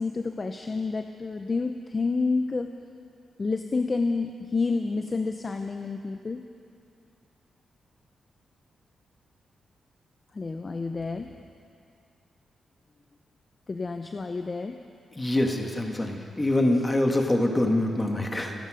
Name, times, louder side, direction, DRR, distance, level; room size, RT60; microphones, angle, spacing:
voice 1, 0.0-2.8 3.4-6.4 10.3-11.4 13.7-14.8, left 4 dB, 35° left, 6 dB, 0.7 m, -29 dB
voice 2, 15.2-18.6, left 1 dB, 20° left, 2 dB, 1.9 m, -25 dB
25.5 x 11.0 x 5.1 m, 2.4 s
cardioid pair, 85°, 0 cm